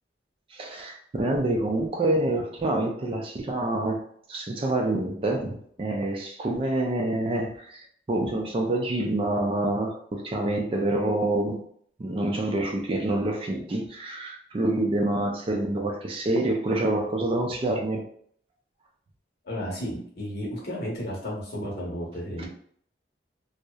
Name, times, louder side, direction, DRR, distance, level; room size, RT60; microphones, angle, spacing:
voice 1, 0.5-4.0 4.3-11.6 12.0-18.1 22.4-22.5, right 2 dB, 30° right, 2 dB, 0.4 m, -27 dB
voice 2, 19.4-22.5, equal, 60° left, -3 dB, 0.9 m, -33 dB
2.6 x 2.0 x 2.2 m, 0.63 s
head